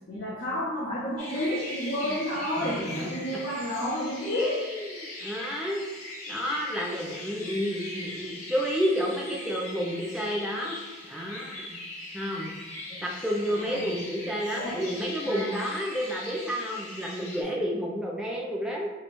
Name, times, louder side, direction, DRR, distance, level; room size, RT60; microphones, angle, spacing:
voice 1, 0.1-4.6 12.9-13.0 13.5-13.9 14.5-14.8 15.2-15.5, left 1 dB, 40° left, -8 dB, 0.6 m, -31 dB
sound 1, 1.2-17.4, left 2 dB, 90° left, 1.0 m, -40 dB
voice 2, 2.6-3.1 4.3-5.9 6.3-10.8 11.1-11.8 12.1-12.5 13.0-18.9, equal, 5° right, -3 dB, 0.4 m, -30 dB
3.0 x 2.2 x 4.1 m, 1.2 s
head